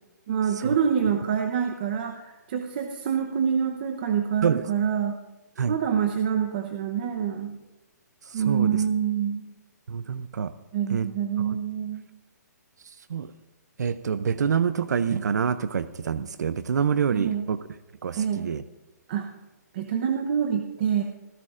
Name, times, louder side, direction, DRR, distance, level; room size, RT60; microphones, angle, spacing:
voice 1, 0.3-5.1 5.7-7.6 8.3-9.5 10.7-12.0 17.1-17.5 18.1-18.5 19.1-19.3 19.7-21.0, right 8 dB, 30° right, 4 dB, 0.9 m, -26 dB
voice 2, 8.3-8.8 9.9-10.5 10.9-11.1 11.4-11.6 13.1-13.3 13.8-17.6 18.0-18.6, right 7 dB, 70° right, 13 dB, 0.6 m, -26 dB
26.0 x 15.5 x 2.5 m, 1.1 s
hypercardioid pair, 170°, 10 cm